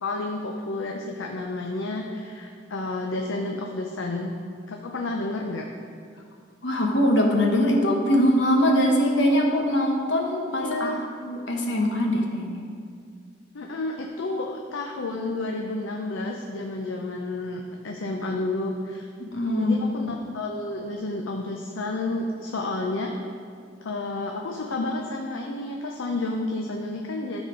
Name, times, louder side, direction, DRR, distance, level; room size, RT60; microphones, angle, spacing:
voice 1, 0.0-4.3 4.7-5.7 10.6-11.0 13.5-19.1 19.6-23.1 23.8-27.4, left 2 dB, 90° left, 1 dB, 0.6 m, -30 dB
voice 2, 6.6-10.9 11.2-12.6 19.2-19.8, equal, 70° left, 1 dB, 1.2 m, -22 dB
12.5 x 4.2 x 5.1 m, 2.2 s
head